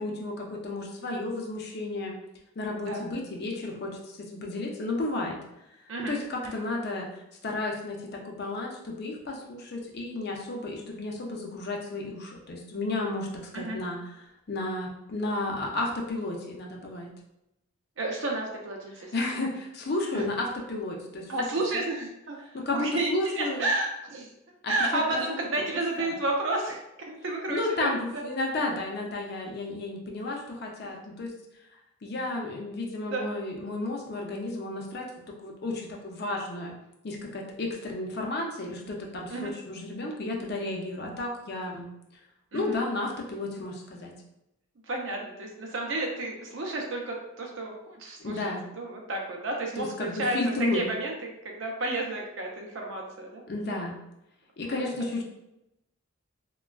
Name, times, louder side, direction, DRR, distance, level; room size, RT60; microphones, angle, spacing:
voice 1, 0.0-2.1 2.6-5.4 6.1-14.0 14.5-17.1 19.1-21.3 21.7-21.8 22.5-23.6 24.6-25.0 26.0-26.1 27.5-31.3 32.0-36.8 37.0-41.9 42.5-44.1 48.2-48.6 49.8-50.9 53.5-54.0 54.6-55.2, left 2 dB, 50° left, 0 dB, 0.5 m, -32 dB
voice 2, 18.0-19.5 20.1-20.3 21.3-24.3 24.7-26.8 27.1-28.2 33.0-33.2 39.3-39.5 42.5-42.8 44.8-48.4 48.7-51.1 51.4-53.4 54.6-54.8, right 2 dB, 65° right, 0 dB, 0.6 m, -31 dB
3.4 x 2.2 x 2.3 m, 0.86 s
head